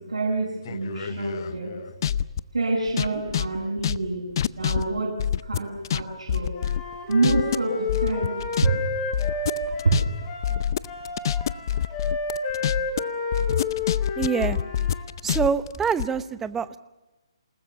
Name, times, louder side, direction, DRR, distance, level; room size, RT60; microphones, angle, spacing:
voice 1, 0.0-1.8 2.5-4.3 4.6-5.1 5.4-6.5 7.1-8.7 9.2-9.4 9.8-9.9, right 3 dB, 85° right, -4 dB, 7.7 m, -26 dB
sound 1, 0.7-2.4 2.9-6.0 6.3-7.6 7.9-8.7 8.9-13.0 13.3-16.1, left 9 dB, 45° left, 0.7 m, -26 dB
Wind instrument woodwind instrument, 6.5-15.0, left 4 dB, 25° left, 6.6 m, -31 dB
voice 2, 14.2-14.6 15.2-16.8, right 6 dB, 10° right, 14 dB, 0.9 m, -25 dB
28.0 x 19.5 x 7.2 m, 1.1 s
hypercardioid pair, 150°, 3 cm